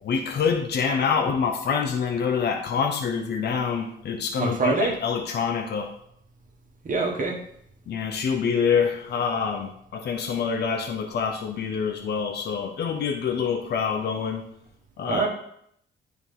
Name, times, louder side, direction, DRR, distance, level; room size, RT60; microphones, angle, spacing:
voice 1, 0.0-5.9 7.9-14.4 15.0-15.3, left 6 dB, 55° left, 4 dB, 0.8 m, -26 dB
voice 2, 4.4-4.9 6.8-7.4 15.0-15.3, right 4 dB, 40° right, 1 dB, 1.5 m, -25 dB
9.9 x 4.0 x 3.7 m, 0.71 s
cardioid pair, 90°, 20 cm